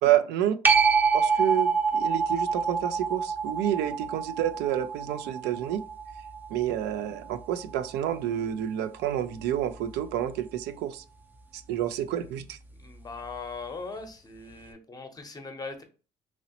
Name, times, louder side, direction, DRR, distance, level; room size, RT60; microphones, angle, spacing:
voice 1, 0.0-0.6 1.1-5.8 6.5-11.0 11.5-12.6, right 11 dB, 85° right, 0.4 m, -29 dB
sound 1, 0.6-7.8 13.3-13.4, right 5 dB, 10° right, 0.5 m, -27 dB
voice 2, 12.8-15.8, left 4 dB, 20° left, 0.7 m, -40 dB
3.0 x 2.8 x 2.8 m
cardioid pair, 110°, 17 cm